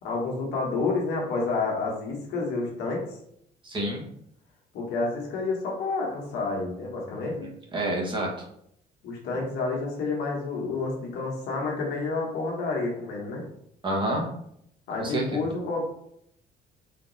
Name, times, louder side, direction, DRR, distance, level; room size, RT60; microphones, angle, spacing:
voice 1, 0.0-3.2 4.7-7.5 9.0-13.4 14.9-15.8, left 3 dB, 75° left, -1 dB, 1.5 m, -29 dB
voice 2, 3.6-4.0 7.2-8.3 13.8-14.3 15.0-15.4, right 1 dB, 30° right, -2 dB, 1.3 m, -29 dB
4.3 x 3.0 x 4.1 m, 0.73 s
cardioid pair, 110°, 17 cm